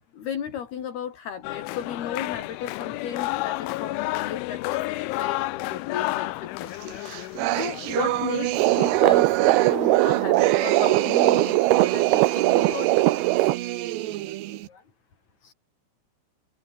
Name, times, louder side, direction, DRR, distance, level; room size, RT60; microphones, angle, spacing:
voice 1, 0.1-13.5, left 8 dB, 60° left, 4.7 m, -35 dB
sound 1, 1.4-10.0, left 19 dB, 90° left, 3.2 m, -32 dB
sound 2, 6.8-14.7, right 15 dB, 70° right, 3.1 m, -28 dB
sound 3, 8.5-13.6, right 18 dB, 90° right, 2.2 m, -20 dB
voice 2, 13.5-14.8 15.4-15.5, left 5 dB, 40° left, 6.5 m, -54 dB
omnidirectional pair, 5.5 m